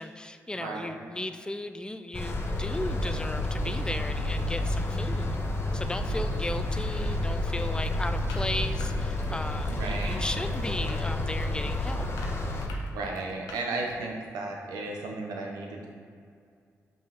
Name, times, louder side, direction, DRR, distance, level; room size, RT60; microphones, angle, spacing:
voice 1, 0.0-5.4 5.7-12.1, left 1 dB, 15° left, 9 dB, 0.4 m, -36 dB
voice 2, 0.5-1.1 9.7-10.2 12.9-15.9, right 3 dB, 85° right, 0 dB, 0.8 m, -34 dB
sound 1, 2.1-12.7, left 1 dB, 40° left, 0.9 m, -30 dB
sound 2, 7.8-9.3 9.6-10.2 10.4-14.1, left 3 dB, 90° left, 0.6 m, -46 dB
5.7 x 5.3 x 3.5 m, 2.2 s
supercardioid pair, 45°, 7 cm